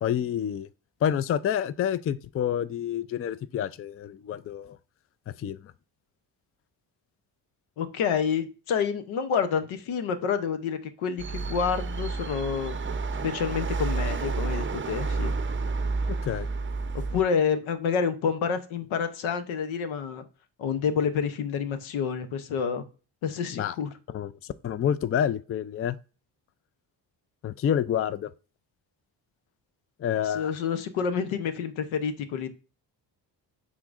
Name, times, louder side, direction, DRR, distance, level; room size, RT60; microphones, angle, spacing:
voice 1, 0.0-0.7 1.0-4.8 5.3-5.6 16.1-16.5 23.5-23.8 24.1-26.0 27.4-28.3 30.0-30.5, left 9 dB, 30° left, 0.4 m, -28 dB
voice 2, 7.8-12.8 13.2-15.3 16.9-20.2 20.6-22.8 23.2-23.9 30.3-32.5, left 6 dB, 90° left, 0.8 m, -28 dB
sound 1, 11.2-17.2, right 3 dB, 25° right, 0.6 m, -30 dB
10.0 x 3.8 x 2.5 m
supercardioid pair, 60°, 47 cm